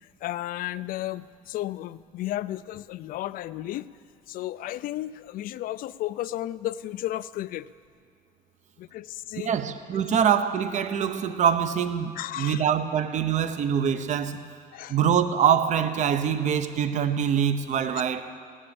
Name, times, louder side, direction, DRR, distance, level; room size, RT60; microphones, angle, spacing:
voice 1, 0.0-3.9 4.3-7.7 8.8-9.5 12.2-12.7 14.7-15.0 17.9-18.0, left 14 dB, 60° left, 16 dB, 0.4 m, -33 dB
voice 2, 9.4-14.4 14.9-18.3, right 8 dB, 50° right, 10 dB, 0.8 m, -24 dB
15.5 x 10.0 x 7.0 m, 2.2 s
cardioid pair, 125°, 16 cm